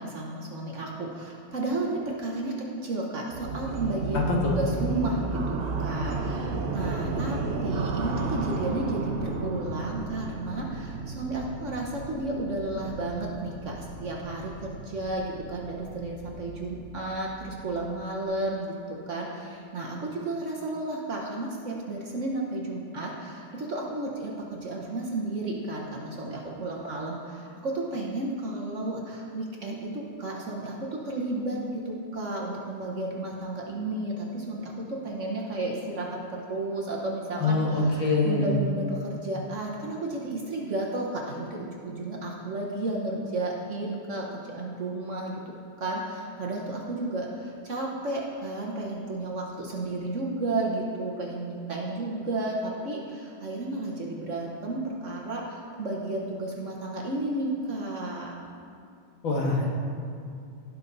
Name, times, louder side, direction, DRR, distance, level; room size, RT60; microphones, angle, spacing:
voice 1, 0.0-4.3 4.6-37.6 37.9-58.3, right 2 dB, 45° right, -2 dB, 1.2 m, -32 dB
sound 1, 3.3-18.2, right 3 dB, 75° right, 0.5 m, -33 dB
voice 2, 37.4-38.5 59.2-59.7, left 3 dB, 90° left, -2 dB, 2.4 m, -24 dB
16.5 x 5.6 x 4.0 m, 2.5 s
omnidirectional pair, 2.1 m